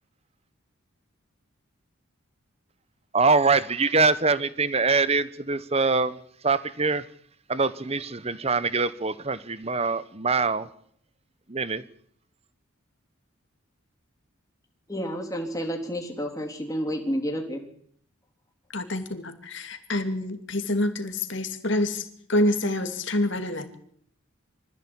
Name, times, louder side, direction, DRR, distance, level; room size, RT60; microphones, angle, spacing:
voice 1, 3.1-6.2 6.4-7.1 7.5-10.7 11.5-11.8, right 4 dB, 30° right, 16 dB, 1.0 m, -24 dB
voice 2, 14.9-17.6, equal, 15° left, 1 dB, 3.6 m, -30 dB
voice 3, 18.7-23.8, left 1 dB, 60° left, 8 dB, 2.7 m, -27 dB
24.5 x 15.0 x 8.7 m, 0.66 s
head